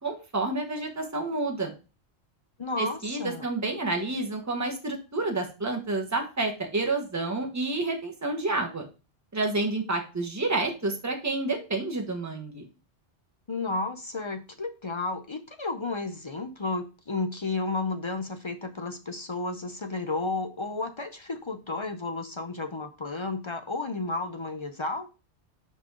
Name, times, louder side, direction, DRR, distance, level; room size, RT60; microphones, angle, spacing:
voice 1, 0.0-1.7 2.8-8.8 9.3-12.7, right 2 dB, 15° right, 3 dB, 1.1 m, -29 dB
voice 2, 2.6-3.5 13.5-25.1, left 3 dB, 40° left, 7 dB, 0.4 m, -32 dB
5.9 x 5.1 x 3.6 m, 0.31 s
omnidirectional pair, 1.2 m